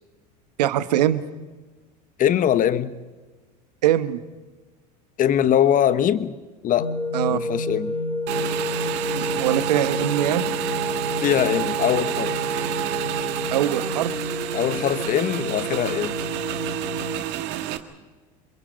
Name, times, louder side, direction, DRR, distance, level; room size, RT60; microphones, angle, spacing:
voice 1, 0.6-1.2 3.8-4.2 7.1-7.4 9.2-10.5 13.5-14.1, right 12 dB, 85° right, 13 dB, 1.2 m, -22 dB
voice 2, 2.2-3.0 5.2-6.3 6.6-6.9 7.3-7.9 11.2-12.4 14.5-16.2, left 10 dB, 40° left, 14 dB, 1.3 m, -22 dB
sound 1, 6.8-17.2, left 1 dB, 75° left, 4.9 m, -30 dB
Motorcycle / Engine, 8.3-17.8, right 13 dB, 60° right, 1.9 m, -29 dB
27.5 x 22.5 x 5.3 m, 1.3 s
hypercardioid pair, 90°, 20 cm